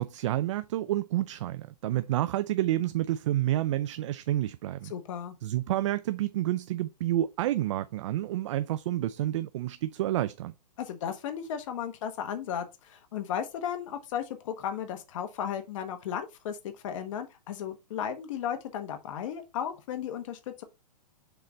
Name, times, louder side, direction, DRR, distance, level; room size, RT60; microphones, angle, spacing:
voice 1, 0.0-4.9 5.4-10.5, right 14 dB, 45° right, 0.4 m, -29 dB
voice 2, 4.8-5.3 10.8-16.6 16.8-20.6, left 9 dB, 50° left, 1.3 m, -35 dB
6.8 x 3.8 x 4.1 m
hypercardioid pair, 150°, 21 cm